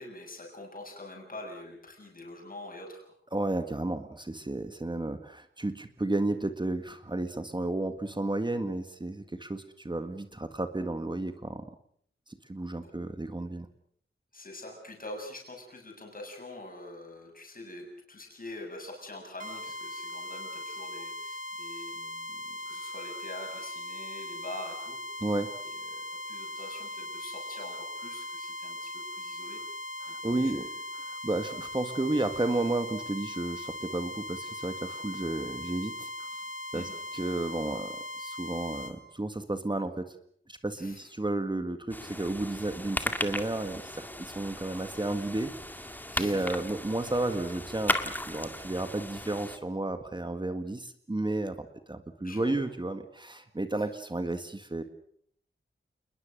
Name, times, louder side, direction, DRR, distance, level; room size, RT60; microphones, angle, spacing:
voice 1, 0.0-3.1 12.8-12.9 14.3-25.2 25.9-29.6 30.1-30.2 30.4-30.7 36.7-37.0 40.8-41.0 46.1-46.6 52.2-52.6, left 2 dB, 40° left, 1 dB, 7.1 m, -45 dB
voice 2, 3.3-11.7 12.3-13.7 25.2-25.5 30.0-36.3 36.7-40.1 40.5-45.6 46.2-54.8, right 2 dB, 20° right, 8 dB, 1.8 m, -32 dB
sound 1, 19.4-38.9, left 1 dB, 40° right, 3.9 m, -39 dB
sound 2, 41.9-49.6, left 1 dB, 10° left, 2.0 m, -36 dB
28.5 x 21.0 x 6.7 m, 0.63 s
wide cardioid pair, 110°, 21 cm